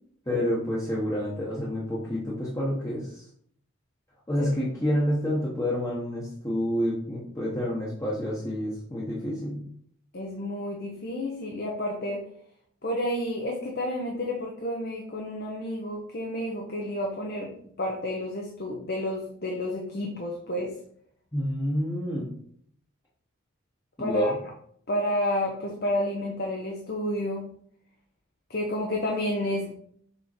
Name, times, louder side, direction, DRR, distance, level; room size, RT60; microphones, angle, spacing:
voice 1, 0.3-3.2 4.3-9.6 21.3-22.3 24.0-24.3, equal, 15° left, -6 dB, 1.1 m, -28 dB
voice 2, 10.1-12.2 12.8-20.7 24.0-24.3 24.9-27.5 28.5-29.7, left 1 dB, 50° left, 0 dB, 0.9 m, -30 dB
6.8 x 3.6 x 4.4 m, 0.64 s
head